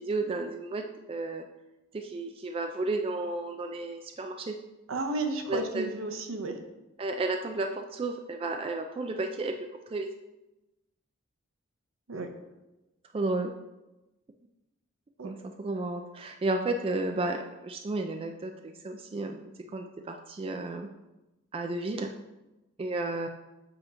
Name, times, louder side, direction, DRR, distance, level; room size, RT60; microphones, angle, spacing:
voice 1, 0.0-1.4 1.9-4.6 5.5-5.9 7.0-9.5 9.9-10.1 13.1-13.5 15.2-20.9 21.5-22.1 22.8-23.3, right 2 dB, 25° right, 5 dB, 0.3 m, -32 dB
voice 2, 4.9-6.6 12.1-12.3 15.2-15.3, right 2 dB, 75° right, 6 dB, 0.7 m, -32 dB
7.7 x 2.9 x 5.0 m, 1.0 s
head